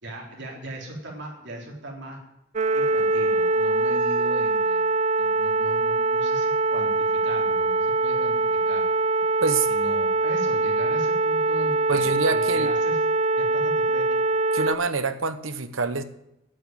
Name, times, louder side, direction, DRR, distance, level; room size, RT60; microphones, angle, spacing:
voice 1, 0.0-2.2 2.7-4.8 5.2-8.8 9.6-13.0 13.4-14.2, right 1 dB, 60° right, 0 dB, 3.7 m, -39 dB
sound 1, 2.6-14.8, right 2 dB, 35° right, 0.6 m, -23 dB
voice 2, 11.9-12.7 14.5-16.0, right 4 dB, 75° right, 11 dB, 1.0 m, -26 dB
9.0 x 8.4 x 8.9 m, 0.84 s
head